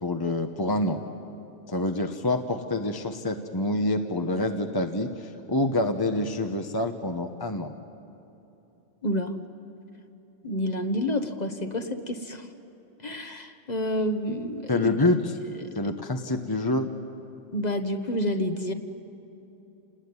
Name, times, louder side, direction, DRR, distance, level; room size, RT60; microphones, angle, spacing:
voice 1, 0.0-1.0 1.7-7.7 14.7-15.4 15.7-16.9, left 2 dB, 20° left, 5 dB, 1.0 m, -27 dB
voice 2, 9.0-9.3 10.4-12.5 13.0-14.9 15.6-15.7 17.5-18.7, left 1 dB, 35° left, 7 dB, 1.4 m, -29 dB
29.0 x 19.0 x 9.7 m, 3.0 s
omnidirectional pair, 1.2 m